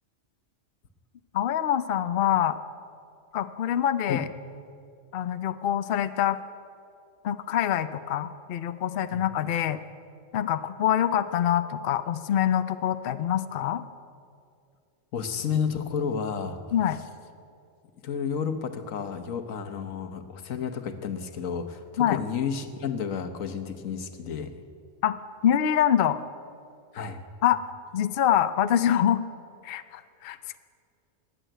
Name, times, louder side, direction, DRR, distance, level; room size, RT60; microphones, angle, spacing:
voice 1, 1.3-2.6 3.3-4.3 5.1-6.4 7.2-9.8 10.3-13.8 16.7-17.0 22.0-22.2 25.0-25.2 25.4-26.2 27.4-27.6 27.9-29.2 29.6-30.6, left 10 dB, 55° left, 12 dB, 0.7 m, -25 dB
voice 2, 15.1-16.6 18.0-24.5 26.9-27.2, left 6 dB, 90° left, 8 dB, 1.4 m, -31 dB
20.0 x 8.0 x 9.0 m, 2.4 s
omnidirectional pair, 1.3 m